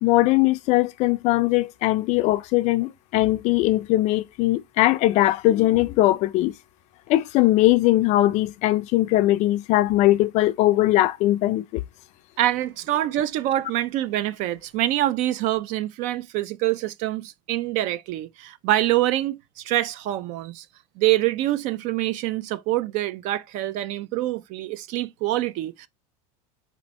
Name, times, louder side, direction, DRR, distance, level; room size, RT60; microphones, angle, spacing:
voice 1, 0.0-6.5 7.1-11.8, left 16 dB, 40° left, 0.4 m, -20 dB
voice 2, 12.4-20.7 21.0-25.9, right 15 dB, 45° right, 0.4 m, -25 dB
4.4 x 2.6 x 4.0 m
supercardioid pair, 145°, 18 cm